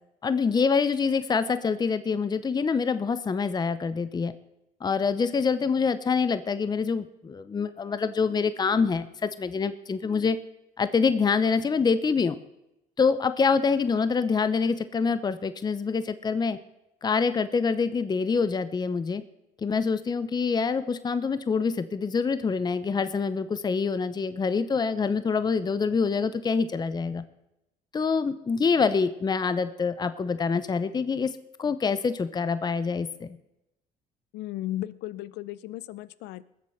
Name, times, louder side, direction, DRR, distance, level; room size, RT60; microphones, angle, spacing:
voice 1, 0.2-4.3 4.8-10.4 10.8-12.4 13.0-16.6 17.0-19.2 19.6-27.2 27.9-31.3 31.6-33.3, left 5 dB, 25° left, 13 dB, 0.7 m, -26 dB
voice 2, 34.3-36.4, left 14 dB, 85° left, 18 dB, 0.7 m, -35 dB
20.5 x 7.7 x 5.7 m, 0.89 s
cardioid pair, 110°, 17 cm